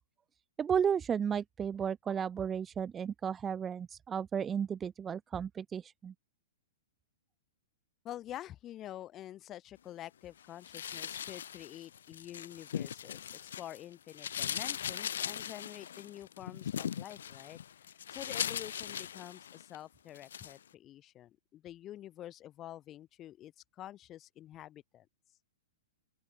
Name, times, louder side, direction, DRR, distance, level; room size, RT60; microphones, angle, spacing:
voice 1, 0.6-6.1, right 7 dB, 10° right, 2.1 m, -33 dB
voice 2, 8.0-25.1, left 12 dB, 20° left, 5.7 m, -48 dB
sound 1, 10.6-13.8 14.1-19.8 20.1-20.6, left 9 dB, 75° left, 3.3 m, -39 dB
open air
hypercardioid pair, 170°, 0 cm